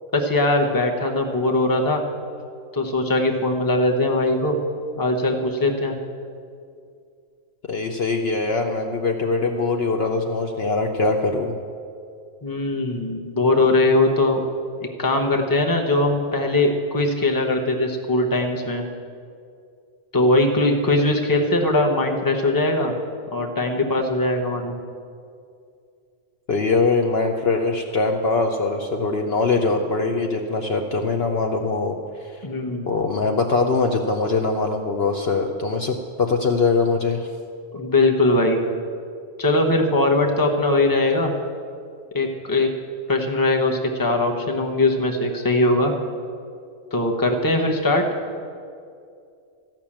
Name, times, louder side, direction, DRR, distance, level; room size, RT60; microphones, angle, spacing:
voice 1, 0.1-2.0 2.7-4.6 5.0-6.0 12.4-14.4 14.8-18.8 20.1-22.9 23.3-24.7 32.4-32.9 37.7-38.6 39.4-41.3 42.1-42.7 43.1-45.9 46.9-48.0, left 2 dB, 20° left, 3 dB, 0.9 m, -20 dB
voice 2, 7.6-11.5 26.5-32.4 32.9-37.3, left 3 dB, 55° left, 4 dB, 0.8 m, -22 dB
13.5 x 6.0 x 8.6 m, 2.4 s
omnidirectional pair, 1.3 m